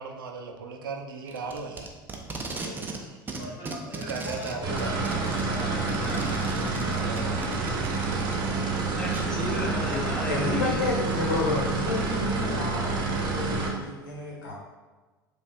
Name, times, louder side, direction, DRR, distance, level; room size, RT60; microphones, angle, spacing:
voice 1, 0.0-5.2 6.9-7.4 9.4-9.8, right 5 dB, 70° right, 3 dB, 0.5 m, -39 dB
Packing tape duct tape, 1.3-3.0 3.3-8.3 9.1-9.2, right 3 dB, 15° right, 0.5 m, -37 dB
voice 2, 3.4-7.4, left 1 dB, 50° left, -3 dB, 1.3 m, -41 dB
sound 1, 4.6-13.7, right 4 dB, 40° right, 0.9 m, -28 dB
voice 3, 9.0-10.7, left 2 dB, 5° left, -3 dB, 1.0 m, -32 dB
voice 4, 10.2-14.5, left 3 dB, 65° left, -3 dB, 1.2 m, -30 dB
7.2 x 2.5 x 2.3 m, 1.3 s
figure-of-eight pair, 70°, 12 cm